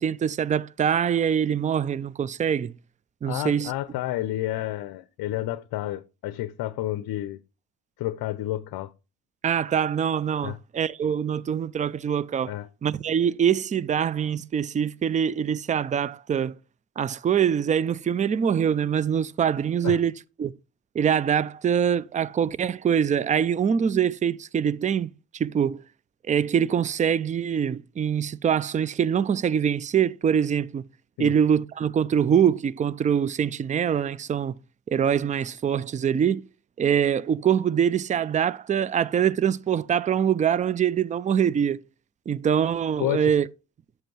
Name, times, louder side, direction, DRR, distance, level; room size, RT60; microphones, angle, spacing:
voice 1, 0.0-2.7 3.2-3.7 9.4-12.5 12.8-16.6 17.0-20.5 20.9-25.8 26.3-30.8 31.2-34.5 34.9-36.4 36.8-41.8 42.3-43.5, right 8 dB, 20° right, 0.4 m, -24 dB
voice 2, 3.3-7.4 8.0-8.9 10.4-10.6 12.5-12.7 19.8-20.0 31.2-31.3 43.0-43.3, left 14 dB, 50° left, 0.6 m, -30 dB
7.5 x 5.8 x 4.6 m
hypercardioid pair, 60°, 46 cm